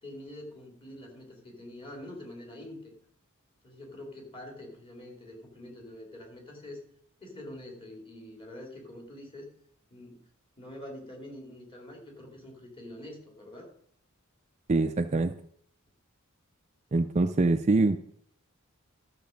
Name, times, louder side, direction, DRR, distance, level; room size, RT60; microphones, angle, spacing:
voice 1, 0.0-2.9 3.6-6.8 7.2-9.5 9.9-10.2 10.6-13.7, left 1 dB, 25° left, 0 dB, 2.9 m, -45 dB
voice 2, 14.7-15.3 16.9-18.0, right 3 dB, 30° right, 8 dB, 0.5 m, -24 dB
12.5 x 6.8 x 5.2 m, 0.64 s
head